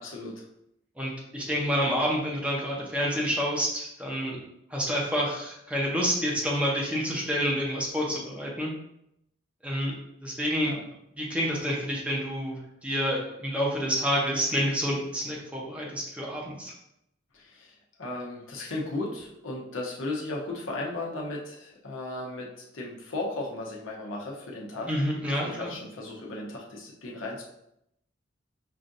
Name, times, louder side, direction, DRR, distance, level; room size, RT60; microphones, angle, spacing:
voice 1, 0.0-0.3 10.6-10.8 17.3-17.7 18.0-24.9 25.4-27.4, left 2 dB, 80° left, -2 dB, 0.9 m, -35 dB
voice 2, 1.0-4.4 4.7-8.7 9.6-9.9 10.2-10.8 11.2-16.7 24.9-25.7, equal, 5° right, -3 dB, 0.8 m, -28 dB
5.5 x 2.5 x 2.6 m, 0.80 s
head